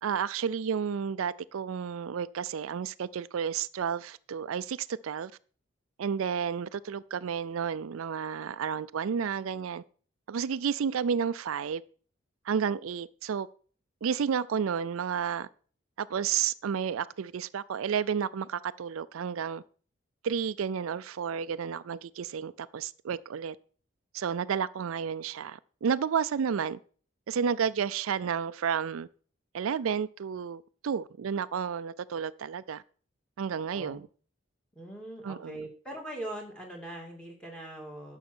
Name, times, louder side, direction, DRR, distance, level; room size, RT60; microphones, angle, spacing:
voice 1, 0.0-5.3 6.0-9.8 10.3-11.8 12.5-13.5 14.0-15.5 16.0-19.6 20.2-23.6 24.1-26.8 27.3-29.1 29.5-32.8 33.4-34.1 35.2-35.7, right 7 dB, 85° right, 0.4 m, -31 dB
voice 2, 33.7-34.0 34.8-38.2, right 1 dB, 5° left, 2.3 m, -41 dB
10.5 x 6.4 x 6.1 m
head